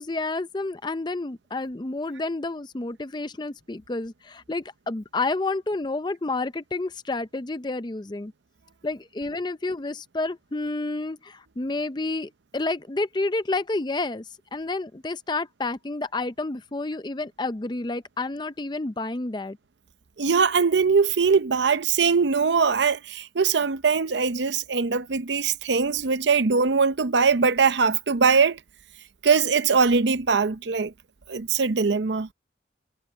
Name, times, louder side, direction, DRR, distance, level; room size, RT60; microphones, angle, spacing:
voice 1, 0.0-8.3 8.8-14.2 14.5-19.6, left 2 dB, 25° left, 0.5 m, -30 dB
voice 2, 20.2-28.6 29.2-30.9 31.3-32.3, right 5 dB, 75° right, 0.7 m, -21 dB
head